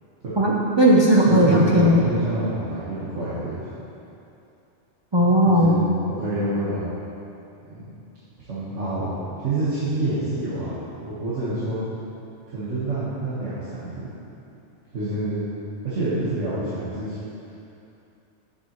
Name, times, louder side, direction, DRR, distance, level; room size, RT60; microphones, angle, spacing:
voice 1, 0.4-2.0 5.1-5.9, equal, 30° right, -5 dB, 0.5 m, -17 dB
voice 2, 1.3-3.7 5.5-5.8 6.1-6.9 7.6-7.8 8.5-9.1 9.4-11.8 12.5-14.1 14.9-15.4 15.8-17.2, right 2 dB, 85° right, -12 dB, 1.8 m, -27 dB
10.0 x 7.1 x 3.0 m, 2.8 s
omnidirectional pair, 1.2 m